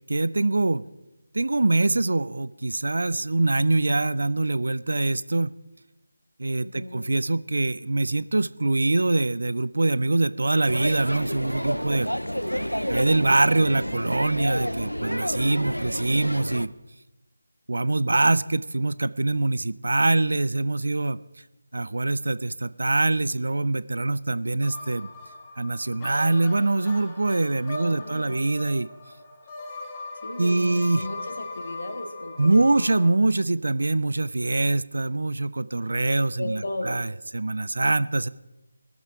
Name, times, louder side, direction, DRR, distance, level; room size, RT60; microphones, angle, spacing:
voice 1, 0.1-0.8 1.3-5.5 6.4-12.1 12.9-16.7 17.7-21.2 21.7-25.1 25.6-28.9 30.4-31.1 32.4-38.3, right 2 dB, 55° right, 17 dB, 0.4 m, -24 dB
voice 2, 6.6-7.1 12.3-13.3 27.8-28.5 30.2-32.8 36.4-37.0, left 1 dB, 55° left, 6 dB, 1.7 m, -36 dB
sound 1, 10.7-16.7, equal, 90° left, 0.6 m, -29 dB
sound 2, 24.6-33.1, left 2 dB, 15° left, 1.0 m, -40 dB
20.0 x 7.4 x 4.8 m, 0.97 s
figure-of-eight pair, 160°, 0 cm